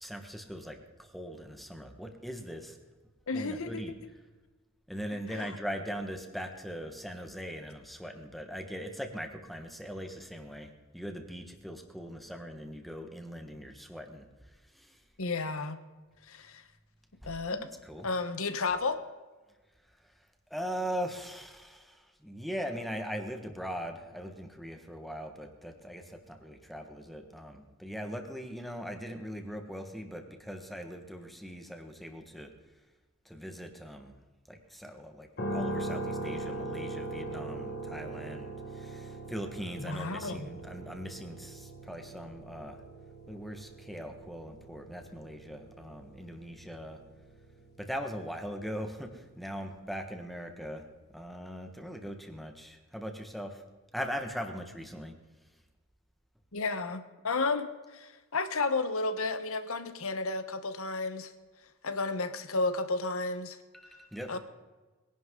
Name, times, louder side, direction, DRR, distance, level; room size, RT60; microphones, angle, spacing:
voice 1, 0.0-2.8 3.3-3.9 4.9-15.0 17.2-18.1 20.5-32.5 33.2-34.1 34.5-42.8 43.3-47.0 47.8-50.8 51.1-53.6 53.9-55.1 63.7-64.4, equal, ahead, 4 dB, 1.6 m, -40 dB
voice 2, 3.3-3.8 5.3-5.5 15.2-15.8 16.3-16.6 17.2-17.7 18.0-19.0 39.8-40.5 56.5-61.3 61.8-63.6 64.3-64.4, left 3 dB, 70° left, 10 dB, 1.2 m, -32 dB
sound 1, 35.4-49.4, right 2 dB, 50° left, 1.5 m, -41 dB
22.0 x 11.0 x 3.9 m, 1.3 s
head